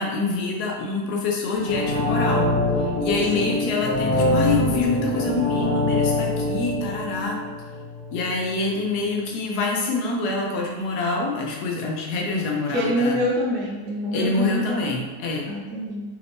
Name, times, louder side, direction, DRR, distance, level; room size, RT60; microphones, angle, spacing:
voice 1, 0.0-7.4 8.1-13.2 14.1-15.5, left 3 dB, 80° left, 0 dB, 1.2 m, -26 dB
sound 1, 1.6-8.4 8.7-8.8, left 2 dB, 45° left, 0.6 m, -24 dB
voice 2, 12.7-14.9 15.5-16.0, equal, 45° right, -4 dB, 0.8 m, -26 dB
3.3 x 2.6 x 3.4 m, 1.3 s
omnidirectional pair, 1.7 m